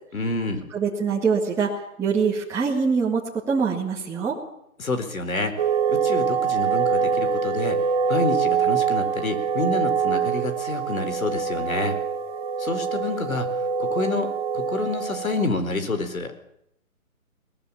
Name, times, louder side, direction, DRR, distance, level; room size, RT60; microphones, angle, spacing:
voice 1, 0.1-0.7 4.8-7.8 8.1-12.0 12.6-13.5 13.8-16.3, left 3 dB, 70° left, 9 dB, 4.4 m, -28 dB
voice 2, 0.7-1.7 2.0-3.2 3.5-4.4, right 5 dB, 5° right, -5 dB, 1.9 m, -23 dB
sound 1, 5.6-15.5, right 6 dB, 25° right, 1.6 m, -24 dB
21.5 x 19.0 x 7.2 m, 0.76 s
figure-of-eight pair, 145°, 43 cm